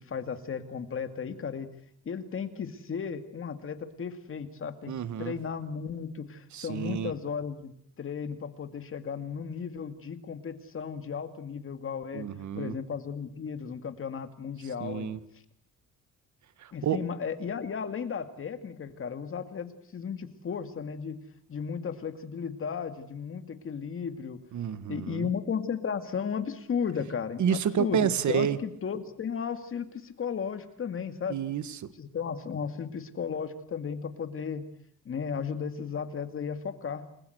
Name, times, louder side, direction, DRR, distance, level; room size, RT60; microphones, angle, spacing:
voice 1, 0.0-1.7 2.1-7.7 8.0-12.2 12.6-15.2 16.7-21.2 21.5-24.4 24.9-31.4 32.0-34.7 35.0-37.1, left 6 dB, 40° left, 8 dB, 2.3 m, -35 dB
voice 2, 4.9-5.3 6.5-7.1 12.1-12.7 14.8-15.2 16.6-17.0 24.5-25.3 27.4-28.6 31.3-31.8, right 8 dB, 65° right, 13 dB, 1.6 m, -29 dB
30.0 x 20.5 x 8.0 m, 0.68 s
cardioid pair, 155°, 32 cm